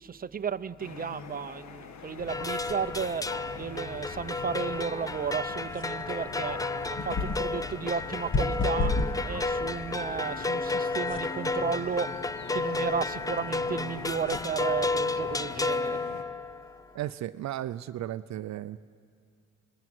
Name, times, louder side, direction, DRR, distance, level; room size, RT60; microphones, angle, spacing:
voice 1, 0.0-3.3 3.6-6.6 6.9-9.0 9.2-12.2 12.5-16.0, right 6 dB, 30° right, 11 dB, 0.8 m, -33 dB
sound 1, 0.8-16.2, left 6 dB, 65° left, 1.5 m, -44 dB
sound 2, 2.2-15.8, left 3 dB, 40° left, 1.6 m, -37 dB
sound 3, 2.3-16.7, left 3 dB, 10° left, 0.5 m, -32 dB
voice 2, 16.9-18.8, right 13 dB, 65° right, 14 dB, 0.5 m, -35 dB
26.0 x 20.5 x 7.9 m, 2.2 s
cardioid pair, 90°, 30 cm